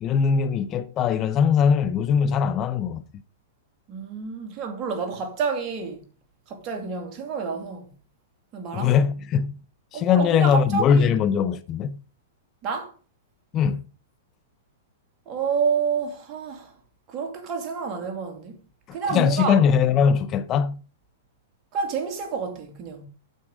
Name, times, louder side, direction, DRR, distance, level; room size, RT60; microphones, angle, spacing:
voice 1, 0.0-3.0 8.7-9.6 9.9-12.0 13.5-13.8 19.1-20.8, left 7 dB, 30° left, 0.6 m, -21 dB
voice 2, 3.9-6.1 6.5-7.9 8.5-9.0 9.9-11.1 12.6-12.9 15.3-16.7 17.1-18.6 18.9-19.6 21.7-23.1, right 5 dB, 35° right, 2.6 m, -29 dB
9.2 x 7.3 x 4.9 m
hypercardioid pair, 125°, 0 cm